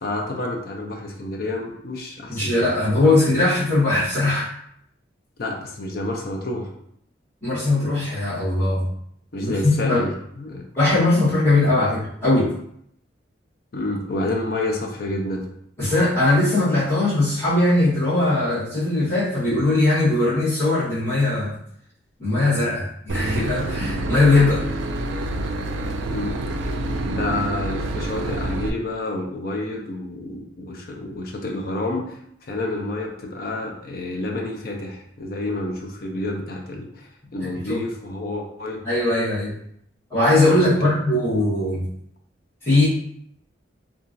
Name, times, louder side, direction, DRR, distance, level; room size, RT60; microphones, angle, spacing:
voice 1, 0.0-2.8 5.4-6.7 9.3-10.6 13.7-15.5 26.1-26.4 27.1-32.0 32.5-38.8 40.7-40.9, left 2 dB, 55° left, 1 dB, 0.5 m, -29 dB
voice 2, 2.3-4.5 7.4-8.8 9.4-10.0 10.8-12.5 15.8-21.6 22.2-24.6 37.4-37.8 38.8-39.5 40.1-41.8 42.6-42.9, left 2 dB, 15° left, -14 dB, 1.4 m, -20 dB
Boat Water vehicle / Engine, 23.1-28.7, right 2 dB, 90° right, 0.3 m, -27 dB
2.9 x 2.4 x 2.5 m, 0.71 s
head